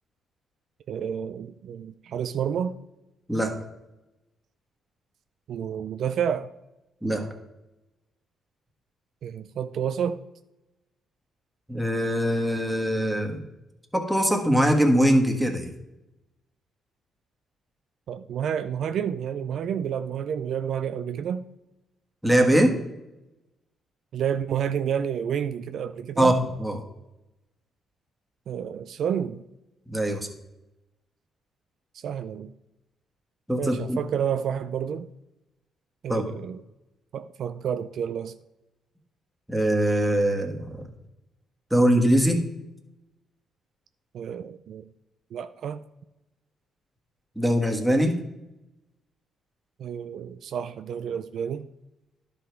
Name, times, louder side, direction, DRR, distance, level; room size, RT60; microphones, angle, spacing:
voice 1, 0.9-2.8 5.5-6.5 9.2-10.2 18.1-21.5 24.1-26.3 28.5-29.4 32.0-32.5 33.6-35.1 36.0-36.6 37.1-38.3 44.1-44.8 45.3-45.8 49.8-51.7, right 8 dB, 70° right, 0.4 m, -30 dB
voice 2, 11.7-13.4 13.9-15.7 22.2-22.8 26.2-26.3 26.6-26.8 29.9-30.3 33.5-34.0 36.1-36.2 39.5-40.9 41.7-42.4 47.3-48.2, right 1 dB, 5° right, 1.5 m, -22 dB
11.0 x 5.1 x 4.5 m
cardioid pair, 90°, 0 cm